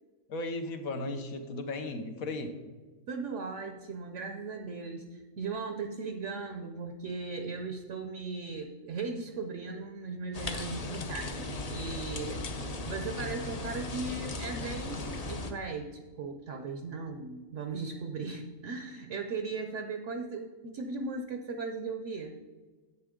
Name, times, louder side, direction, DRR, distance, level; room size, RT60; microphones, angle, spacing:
voice 1, 0.3-2.6, left 2 dB, 70° left, 7 dB, 1.4 m, -36 dB
voice 2, 3.1-22.4, right 4 dB, 60° right, 6 dB, 1.0 m, -38 dB
sound 1, 10.3-15.5, left 2 dB, 40° left, 0.6 m, -37 dB
10.5 x 8.2 x 3.7 m, 1.4 s
omnidirectional pair, 1.6 m